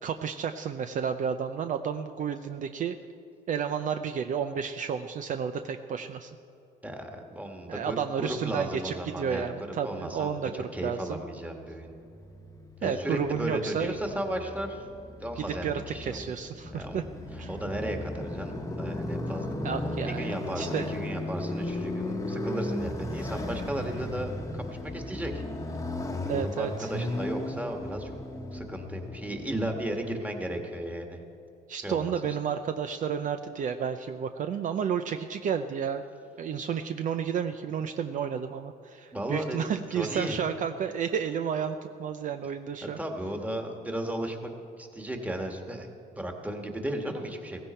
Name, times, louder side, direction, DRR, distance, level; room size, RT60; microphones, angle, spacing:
voice 1, 0.0-3.0 3.5-6.4 7.7-10.5 10.8-11.2 12.8-13.9 15.4-17.0 17.4-17.5 19.6-20.9 26.3-26.9 31.7-36.0 36.4-43.0, right 7 dB, 50° right, 8 dB, 0.6 m, -31 dB
voice 2, 6.8-11.9 12.8-14.8 15.2-16.3 16.7-17.0 17.3-19.6 20.1-25.3 26.3-28.1 28.5-31.2 31.8-32.1 39.1-40.3 42.8-44.5 44.8-45.9 46.2-47.6, right 1 dB, 10° right, 3 dB, 1.8 m, -35 dB
Motorcycle, 12.0-30.2, left 1 dB, 20° left, 1.2 m, -36 dB
16.0 x 15.5 x 4.5 m, 2.6 s
cardioid pair, 110°, 17 cm